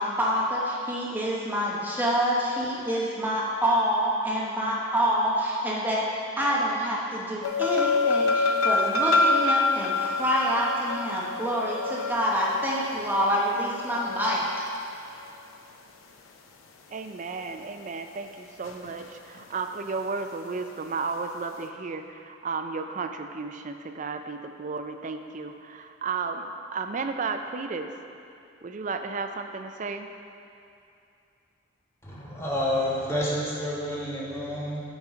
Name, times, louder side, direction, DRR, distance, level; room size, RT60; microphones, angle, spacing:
voice 1, 0.0-6.1 6.4-14.4, equal, 10° right, -5 dB, 0.9 m, -27 dB
sound 1, 7.4-14.8 18.6-19.0 19.4-19.5, left 3 dB, 85° left, 0.6 m, -26 dB
voice 2, 16.9-28.0 28.6-30.1, right 4 dB, 40° right, 7 dB, 0.4 m, -33 dB
voice 3, 32.0-34.8, left 1 dB, 15° left, -6 dB, 1.2 m, -29 dB
8.0 x 5.7 x 4.9 m, 2.6 s
head